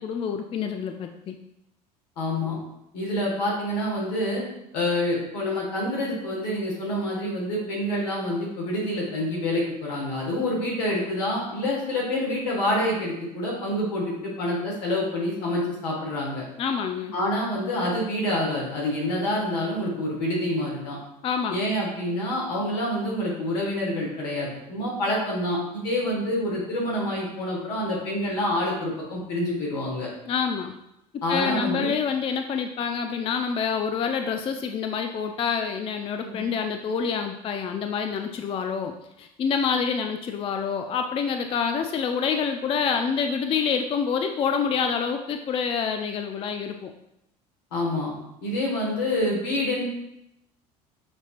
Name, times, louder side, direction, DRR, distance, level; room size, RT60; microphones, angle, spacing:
voice 1, 0.0-1.4 16.6-17.1 21.2-21.6 30.3-30.7 31.3-38.9 39.2-46.9, left 6 dB, 25° left, 6 dB, 0.3 m, -27 dB
voice 2, 2.2-2.6 2.9-4.4 4.7-16.4 17.1-21.0 21.5-30.1 31.2-31.9 36.2-36.4 47.7-48.1 48.4-49.9, left 1 dB, 75° left, -3 dB, 1.6 m, -27 dB
6.0 x 2.8 x 2.4 m, 0.84 s
hypercardioid pair, 70°, 21 cm